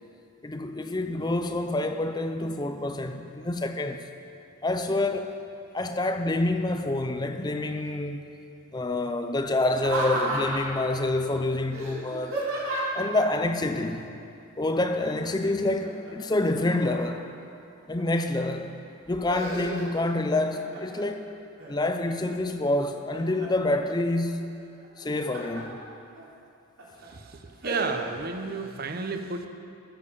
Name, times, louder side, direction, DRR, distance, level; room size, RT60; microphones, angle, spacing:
voice 1, 0.4-4.1 4.6-5.4 5.7-8.2 8.7-12.4 12.9-14.1 14.6-17.2 17.9-18.7 19.1-21.3 21.7-24.6 25.0-25.8, left 2 dB, 20° left, 0.5 m, -27 dB
Laughter, 9.7-10.8 11.7-13.1 14.8-15.3 15.6-17.2 17.8-18.4 18.8-20.1 20.5-21.1 21.6-22.4 22.8-23.7 24.8-25.6 26.2-26.3 26.8-27.1 27.6-27.9, right 2 dB, 75° right, 3.2 m, -33 dB
voice 2, 27.1-29.5, right 4 dB, 45° right, 0.7 m, -32 dB
13.5 x 7.0 x 6.9 m
head